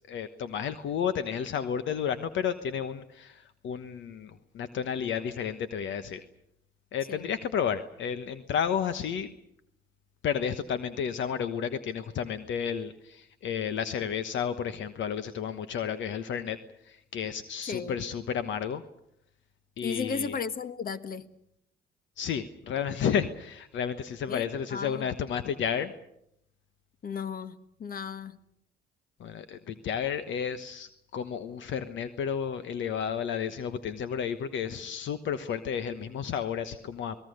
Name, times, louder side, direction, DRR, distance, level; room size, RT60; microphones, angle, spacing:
voice 1, 0.1-6.2 6.9-9.3 10.2-16.6 16.8-18.8 19.8-20.4 22.2-26.0 29.2-37.2, left 8 dB, 65° left, 12 dB, 1.2 m, -32 dB
voice 2, 17.6-18.0 19.8-21.3 24.3-25.1 27.0-28.4, left 6 dB, 45° left, 12 dB, 1.6 m, -35 dB
29.0 x 19.5 x 6.6 m, 0.75 s
supercardioid pair, 65°, 20 cm